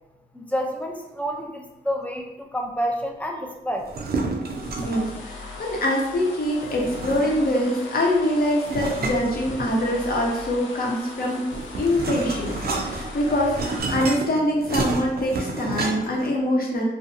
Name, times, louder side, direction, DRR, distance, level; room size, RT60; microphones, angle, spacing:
voice 1, 0.3-3.9, equal, 5° left, 2 dB, 0.4 m, -29 dB
sound 1, 3.8-5.2 6.6-7.6 8.6-10.0 11.2-16.3, right 3 dB, 55° right, 0.5 m, -30 dB
sound 2, 4.4-13.8, left 3 dB, 90° left, 0.5 m, -39 dB
voice 2, 4.8-11.5 11.8-16.8, left 1 dB, 50° left, -1 dB, 0.7 m, -24 dB
2.6 x 2.3 x 2.5 m, 0.93 s
cardioid pair, 80°, 19 cm